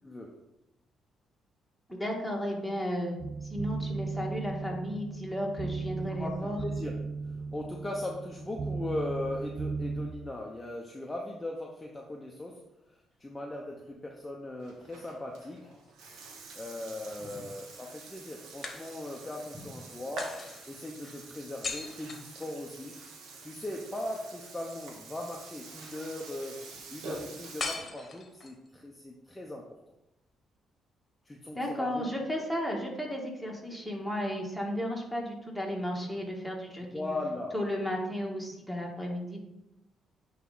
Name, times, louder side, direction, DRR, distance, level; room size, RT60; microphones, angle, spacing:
voice 1, 0.0-0.4 6.1-7.0 7.5-15.7 16.5-20.4 20.7-23.0 23.4-29.6 31.2-32.0 36.9-37.6, left 1 dB, 15° left, -1 dB, 0.8 m, -39 dB
voice 2, 1.9-3.2 3.4-6.6 17.2-17.4 31.5-37.1 37.5-39.4, equal, ahead, -1 dB, 1.6 m, -34 dB
sound 1, 3.2-10.1, right 4 dB, 45° right, 0.6 m, -36 dB
Burping eructation, 14.6-27.7, right 3 dB, 85° right, 1.1 m, -47 dB
sound 2, 15.5-16.6 18.6-19.4 20.2-23.0 27.6-28.7, left 4 dB, 40° left, 1.1 m, -41 dB
9.0 x 3.2 x 3.9 m, 0.91 s
cardioid pair, 90°, 0 cm